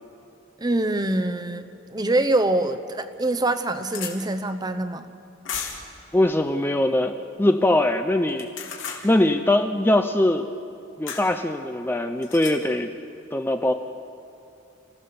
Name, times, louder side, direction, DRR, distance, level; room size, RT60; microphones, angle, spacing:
voice 1, 0.6-5.1, right 2 dB, 20° right, 9 dB, 0.8 m, -24 dB
sound 1, 2.5-2.6 3.1-3.2 3.4-4.1 5.5-5.9 8.3-9.0 11.1-11.3 12.2-12.6, left 7 dB, 85° left, 3.0 m, -34 dB
voice 2, 6.1-8.5 9.0-10.5 11.0-12.9 13.3-13.7, left 1 dB, 10° left, 7 dB, 0.5 m, -21 dB
28.5 x 16.0 x 6.9 m, 2.8 s
head